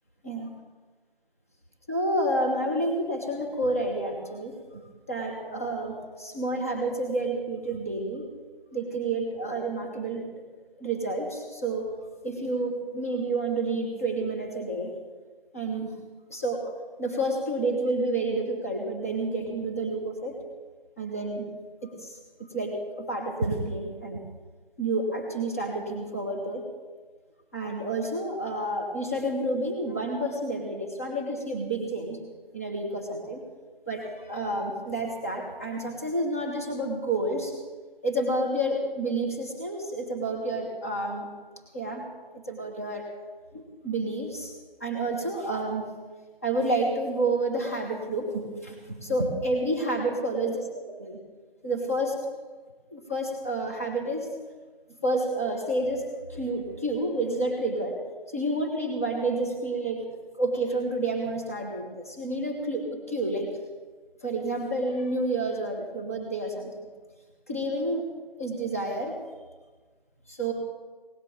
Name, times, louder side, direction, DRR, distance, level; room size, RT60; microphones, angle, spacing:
voice 1, 1.9-8.2 8.7-10.3 10.8-11.9 12.2-14.9 15.5-16.0 16.3-16.7 17.0-20.4 21.0-21.5 21.8-24.2 24.8-26.7 27.5-32.2 32.5-33.4 33.9-37.5 38.0-41.3 41.7-43.1 43.5-44.5 44.8-45.9 46.4-50.6 51.0-51.2 51.6-52.3 52.9-54.3 55.0-58.0 58.3-60.0 60.4-63.5 64.2-66.8 67.5-68.0 68.4-69.2 70.3-70.5, right 2 dB, 15° left, -1 dB, 1.3 m, -29 dB
18.0 x 7.9 x 9.1 m, 1.4 s
figure-of-eight pair, 170°, 30 cm